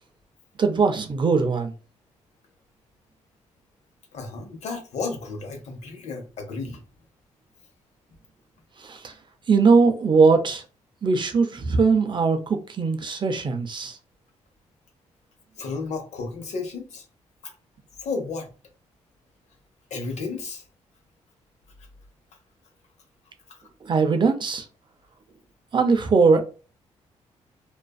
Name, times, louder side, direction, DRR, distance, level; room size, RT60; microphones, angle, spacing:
voice 1, 0.6-1.7 8.8-9.1 9.5-10.6 11.0-14.0 23.8-24.6 25.7-26.4, right 4 dB, 40° right, 0.5 m, -20 dB
voice 2, 4.1-6.8 15.6-17.0 18.0-18.5 19.9-20.6, left 4 dB, 65° left, 0.9 m, -32 dB
2.5 x 2.3 x 2.3 m
cardioid pair, 70°, 12 cm